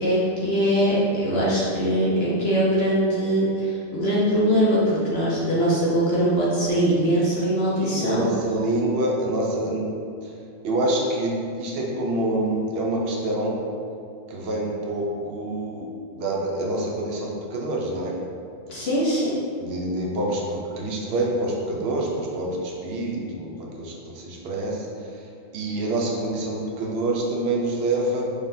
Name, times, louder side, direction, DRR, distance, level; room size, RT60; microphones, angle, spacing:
voice 1, 0.0-8.3 18.7-19.4, equal, 60° left, -7 dB, 0.9 m, -22 dB
voice 2, 7.8-9.8 10.6-13.6 14.3-15.9 16.1-18.1 19.6-24.9 25.5-28.2, right 1 dB, 55° right, -2 dB, 0.8 m, -26 dB
3.8 x 3.3 x 2.6 m, 2.4 s
omnidirectional pair, 1.3 m